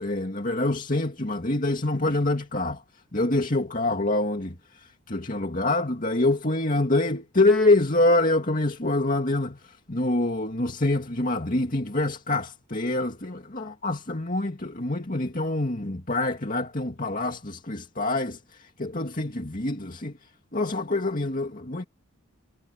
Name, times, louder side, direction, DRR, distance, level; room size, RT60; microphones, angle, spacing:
voice 1, 0.0-2.8 3.1-20.1 20.5-21.8, left 2 dB, 40° left, 2.2 m, -26 dB
head